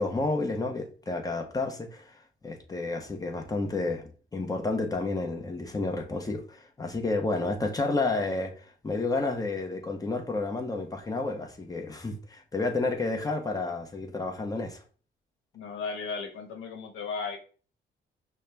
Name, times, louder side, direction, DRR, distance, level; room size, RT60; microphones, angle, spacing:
voice 1, 0.0-2.2 2.4-14.8, left 3 dB, 20° left, 0.9 m, -31 dB
voice 2, 15.5-17.4, left 4 dB, 85° left, 1.0 m, -35 dB
5.5 x 2.2 x 3.3 m
cardioid pair, 90°, 20 cm